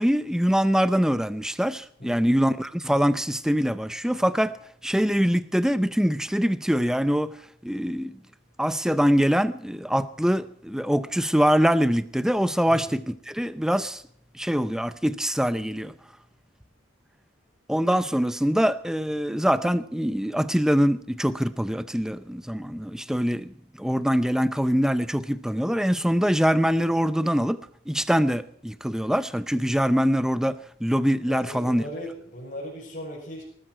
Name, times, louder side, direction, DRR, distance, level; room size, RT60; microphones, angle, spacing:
voice 1, 0.0-4.6 4.8-7.4 7.6-8.1 8.6-14.0 14.3-15.9 17.7-31.8, equal, 5° right, 0.5 m, -24 dB
voice 2, 2.0-2.4 12.7-12.8 31.2-33.4, equal, 45° left, 6.0 m, -38 dB
19.5 x 14.5 x 4.6 m
head